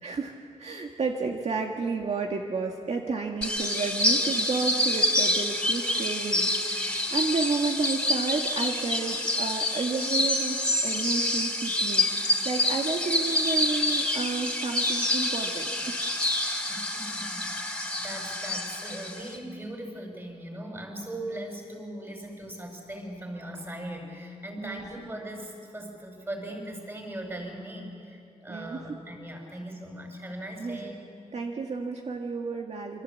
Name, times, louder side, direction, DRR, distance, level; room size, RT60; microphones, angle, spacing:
voice 1, 0.0-16.1 24.6-24.8 28.5-28.8 30.6-30.8 31.3-33.0, right 4 dB, 60° right, 1 dB, 1.9 m, -31 dB
sound 1, 3.4-19.4, left 1 dB, 10° left, 3.0 m, -27 dB
voice 2, 16.7-30.9, right 1 dB, 20° right, 2 dB, 5.9 m, -39 dB
27.0 x 25.5 x 8.5 m, 2.4 s
wide cardioid pair, 160°, 13 cm